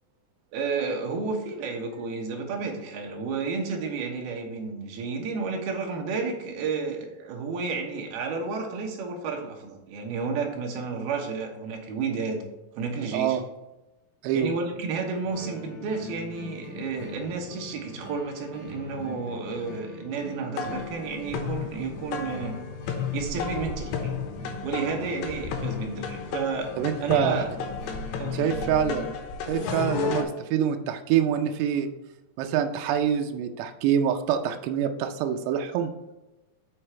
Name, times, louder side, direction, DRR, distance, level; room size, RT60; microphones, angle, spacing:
voice 1, 0.5-12.4 12.7-13.4 14.3-22.6 23.1-24.1 24.6-26.7 27.0-27.5 28.2-28.5, right 4 dB, 70° right, 2 dB, 3.0 m, -31 dB
voice 2, 13.1-13.4 14.2-14.5 26.8-27.5 28.3-29.1 29.5-31.9 32.4-35.9, right 9 dB, 90° right, 6 dB, 2.8 m, -25 dB
sound 1, 15.2-29.1, left 2 dB, 50° left, 3.7 m, -41 dB
Btayhi Msarref Rhythm+San'a, 20.6-30.2, left 6 dB, 90° left, 3.1 m, -33 dB
6.6 x 6.5 x 4.4 m, 1.0 s
omnidirectional pair, 4.8 m